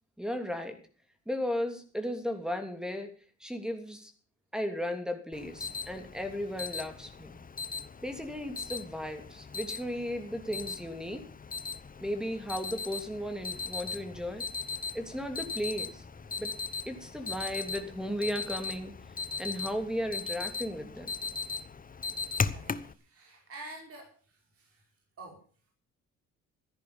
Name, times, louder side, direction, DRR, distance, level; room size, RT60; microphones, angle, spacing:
voice 1, 0.2-0.8 1.3-3.1 3.4-4.1 4.5-7.3 8.0-11.2 12.0-14.4 14.9-16.0 16.4-16.5 16.9-18.9 19.4-21.1, equal, ahead, 7 dB, 3.0 m, -35 dB
Alarm, 5.3-22.9, left 5 dB, 30° left, 1.0 m, -38 dB
voice 2, 22.5-24.8 25.2-25.4, right 2 dB, 50° right, 0 dB, 5.1 m, -48 dB
14.0 x 10.5 x 6.9 m, 0.42 s
cardioid pair, 90°, 30 cm